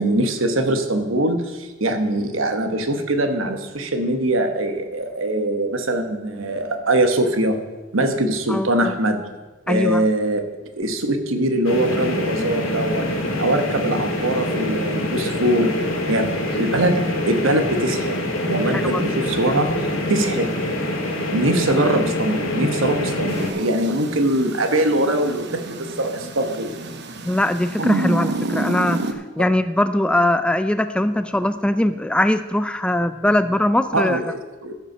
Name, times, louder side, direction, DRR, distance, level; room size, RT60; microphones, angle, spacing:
voice 1, 0.0-7.6 7.9-9.3 9.7-10.4 10.7-13.1 13.4-15.8 16.1-19.7 20.1-20.5 21.3-26.8 33.9-34.7, right 1 dB, 75° right, 6 dB, 1.2 m, -22 dB
voice 2, 8.5-8.9 9.7-10.0 18.7-19.1 27.3-34.2, left 1 dB, 5° left, 11 dB, 0.3 m, -21 dB
sound 1, 11.6-23.5, left 1 dB, 85° left, 2.0 m, -25 dB
sound 2, 23.3-29.1, right 2 dB, 60° right, 0.9 m, -28 dB
13.5 x 5.7 x 6.1 m, 1.2 s
head